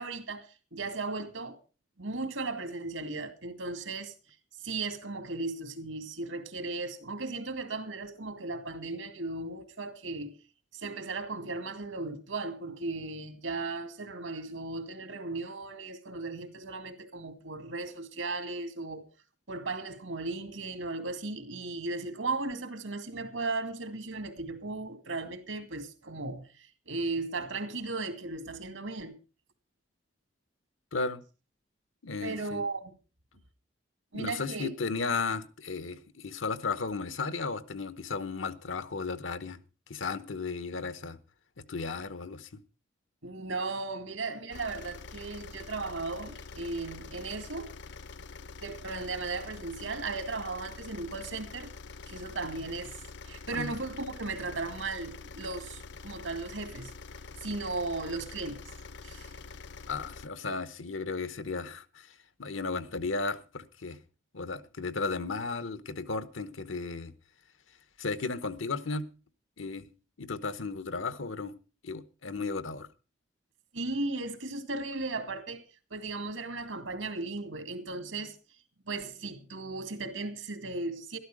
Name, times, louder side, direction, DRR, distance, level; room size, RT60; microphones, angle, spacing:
voice 1, 0.0-1.6 2.0-4.1 4.6-10.4 10.7-19.1 19.5-29.2 32.2-32.9 34.1-34.7 43.2-47.7 48.6-51.7 52.1-56.9 57.4-58.7 59.0-59.3 73.7-75.6 75.9-78.4 78.9-81.2, right 3 dB, 90° right, 2.4 m, -36 dB
voice 2, 32.0-32.6 34.1-39.6 39.9-41.2 41.7-42.6 53.5-53.7 59.9-64.0 64.3-67.1 68.0-69.1 69.6-69.9 70.2-71.5 71.8-72.9, left 4 dB, 90° left, 1.1 m, -34 dB
sound 1, 44.5-60.3, left 4 dB, 60° left, 0.6 m, -46 dB
13.0 x 12.5 x 4.9 m
head